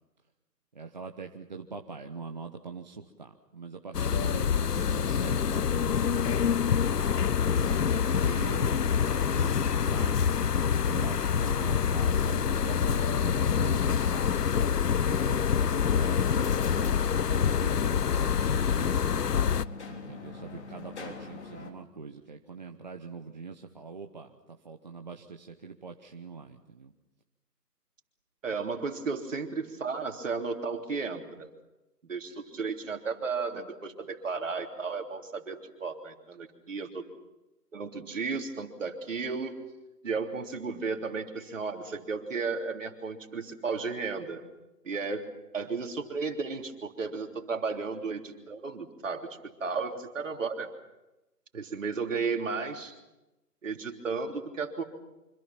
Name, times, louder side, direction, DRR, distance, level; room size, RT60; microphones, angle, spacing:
voice 1, 0.7-7.0 7.5-10.2 10.8-14.3 15.0-18.9 19.9-26.9, right 4 dB, 30° right, 4 dB, 1.0 m, -43 dB
sound 1, 3.9-19.6, left 7 dB, 75° left, 0.8 m, -26 dB
sound 2, 15.9-21.7, left 4 dB, 45° left, 3.7 m, -43 dB
voice 2, 28.4-31.5 32.0-37.0 37.7-39.6 40.0-44.4 44.8-45.3 45.5-50.7 51.5-52.9 53.6-54.8, right 4 dB, 50° right, 4 dB, 3.4 m, -34 dB
26.5 x 26.0 x 5.9 m, 0.99 s
figure-of-eight pair, 160°, 48 cm